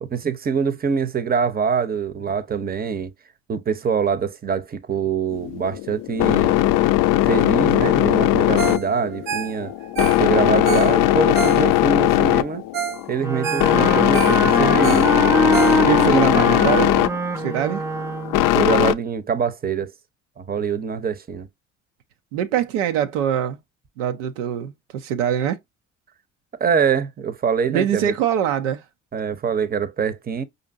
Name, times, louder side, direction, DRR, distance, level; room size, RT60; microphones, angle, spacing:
voice 1, 0.0-3.1 3.5-6.6 7.2-9.7 10.2-12.6 13.1-15.1 18.5-19.9 20.4-21.5 26.6-28.1 29.1-30.4, right 6 dB, 25° right, 0.7 m, -24 dB
sound 1, 5.3-18.9, left 15 dB, 60° left, 0.5 m, -19 dB
Ringtone, 8.6-8.9 9.1-12.0 12.4-12.5 12.7-13.0 13.3-16.2 16.6-16.7, right 8 dB, 65° right, 1.0 m, -29 dB
Wind instrument woodwind instrument, 13.2-18.5, right 2 dB, 10° right, 0.3 m, -23 dB
voice 2, 15.8-16.9 17.4-17.8 22.3-23.6 24.0-25.6 27.7-28.8, right 9 dB, 85° right, 0.6 m, -23 dB
5.0 x 2.6 x 2.5 m
hypercardioid pair, 60°, 37 cm